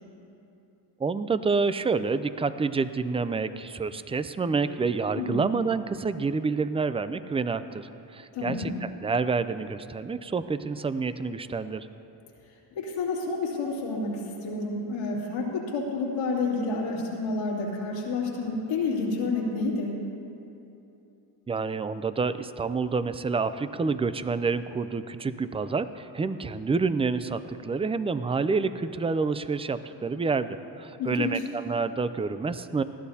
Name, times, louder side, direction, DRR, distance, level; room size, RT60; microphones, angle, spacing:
voice 1, 1.0-11.9 21.5-32.8, right 4 dB, 15° right, 13 dB, 0.4 m, -28 dB
voice 2, 5.1-5.5 8.3-8.7 12.7-20.0 31.0-31.4, left 3 dB, 90° left, -4 dB, 2.8 m, -29 dB
20.0 x 14.0 x 2.8 m, 2.9 s
supercardioid pair, 80°, 50 cm